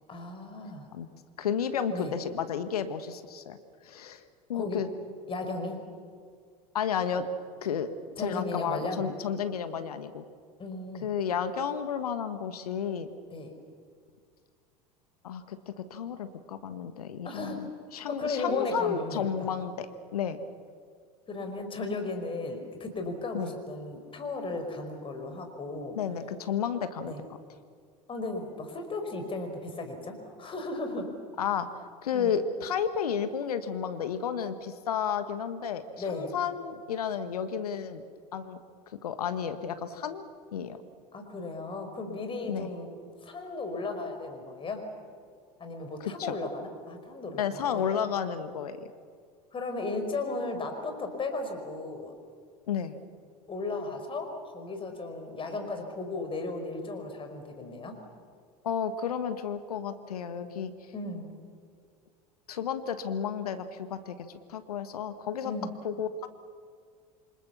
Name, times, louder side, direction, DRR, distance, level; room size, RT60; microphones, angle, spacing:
voice 1, 0.1-0.9 1.9-2.1 4.5-4.9 5.3-5.8 8.2-9.0 10.6-11.1 13.3-13.5 17.2-17.6 17.9-19.3 21.3-26.0 27.0-27.2 28.1-31.1 32.1-32.3 36.0-36.3 41.1-44.9 45.6-47.8 49.5-52.1 53.5-58.0 60.9-61.3 65.4-65.7, left 3 dB, 25° left, 5 dB, 5.4 m, -35 dB
voice 2, 1.4-3.6 3.8-4.9 6.7-7.3 7.6-7.9 8.2-10.2 11.0-13.1 15.2-20.4 23.3-23.5 26.0-27.1 31.4-31.7 32.0-38.0 38.3-38.6 39.0-40.3 40.5-40.8 42.5-42.7 46.0-46.3 47.4-48.9 52.7-52.9 58.6-60.7 62.5-64.2 64.5-65.5 65.8-66.1, left 7 dB, 70° left, 11 dB, 1.5 m, -32 dB
27.5 x 25.5 x 7.1 m, 2.1 s
figure-of-eight pair, 75°, 20 cm